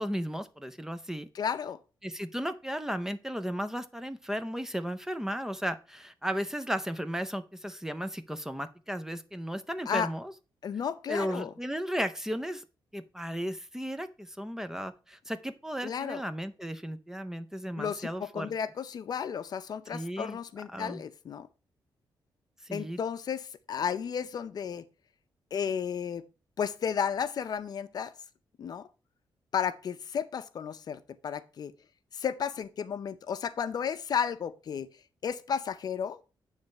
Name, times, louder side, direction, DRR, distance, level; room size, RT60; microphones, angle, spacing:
voice 1, 0.0-1.3 2.0-10.3 11.1-12.6 12.9-18.5 19.9-20.4 20.7-21.0 22.6-23.0, equal, 5° right, 0.5 m, -35 dB
voice 2, 1.3-1.8 9.9-10.1 10.6-11.5 15.8-16.2 17.8-21.5 22.7-24.9 25.5-26.2 26.6-28.1 28.6-28.9 29.5-31.7 32.1-34.9 35.2-36.2, left 7 dB, 55° left, 0.5 m, -33 dB
8.8 x 3.2 x 5.2 m
cardioid pair, 120°, 8 cm